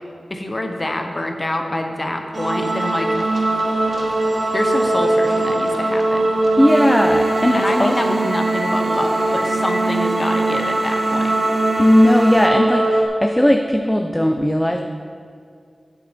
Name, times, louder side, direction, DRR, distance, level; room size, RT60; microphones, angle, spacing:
voice 1, 0.3-3.1 4.5-6.3 7.5-11.3, left 1 dB, 35° left, 4 dB, 0.9 m, -26 dB
sound 1, 2.3-13.1, right 2 dB, 55° right, 1.2 m, -20 dB
voice 2, 6.6-8.0 11.8-14.8, equal, 5° left, 4 dB, 0.4 m, -16 dB
sound 2, 6.7-12.5, right 2 dB, 35° right, 0.9 m, -36 dB
7.6 x 7.5 x 4.4 m, 2.3 s
wide cardioid pair, 60°, 0 cm